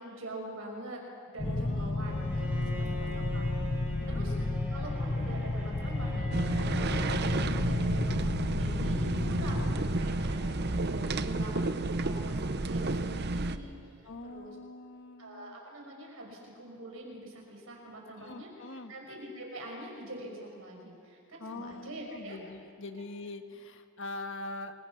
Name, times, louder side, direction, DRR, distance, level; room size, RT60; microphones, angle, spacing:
voice 1, 0.0-2.5 2.8-3.5 3.8-4.4 4.7-6.3 6.6-13.7 14.0-14.6 15.2-22.4, right 1 dB, 70° right, 0 dB, 5.8 m, -44 dB
sound 1, 1.4-11.0, left 2 dB, 30° left, 0.8 m, -32 dB
voice 2, 1.5-3.0 4.0-4.6 6.7-7.0 14.0-15.6 18.2-18.9 21.4-24.7, left 2 dB, 65° left, 7 dB, 1.6 m, -44 dB
Bowed string instrument, 2.0-7.5, equal, 10° right, 5.6 m, -44 dB
sound 2, 6.3-13.6, right 2 dB, 50° right, 0.8 m, -31 dB
28.5 x 23.0 x 5.9 m, 2.5 s
head